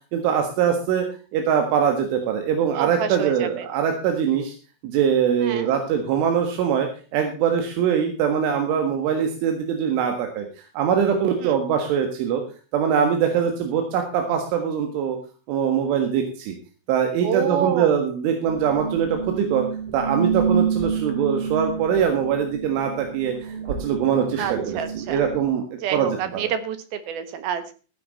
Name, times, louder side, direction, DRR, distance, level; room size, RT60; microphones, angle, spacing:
voice 1, 0.1-1.1 1.3-4.5 4.8-12.4 12.7-15.2 15.5-16.6 16.9-19.7 19.9-25.7 25.9-26.5, right 8 dB, 85° right, 4 dB, 4.1 m, -23 dB
voice 2, 2.7-3.7 5.4-5.7 11.4-11.6 17.2-17.9 24.4-25.2 25.8-27.7, right 8 dB, 65° right, 10 dB, 2.8 m, -28 dB
sound 1, 18.4-25.4, right 6 dB, 35° right, 2.5 m, -28 dB
15.5 x 10.0 x 4.1 m, 0.36 s
omnidirectional pair, 5.4 m